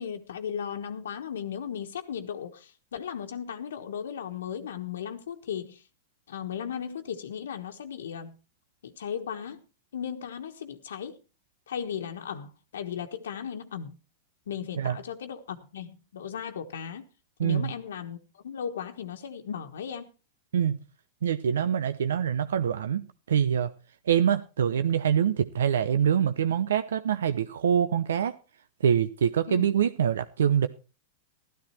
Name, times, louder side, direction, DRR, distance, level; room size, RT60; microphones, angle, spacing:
voice 1, 0.0-5.8 6.3-8.4 8.8-9.6 9.9-11.2 11.7-14.0 14.5-17.1 17.4-20.1 29.5-29.7, left 8 dB, 85° left, 1.3 m, -36 dB
voice 2, 17.4-17.7 20.5-20.8 21.2-23.7 24.1-28.3 28.8-30.7, right 8 dB, 90° right, 0.8 m, -25 dB
13.0 x 12.5 x 4.4 m
hypercardioid pair, 130°, 0 cm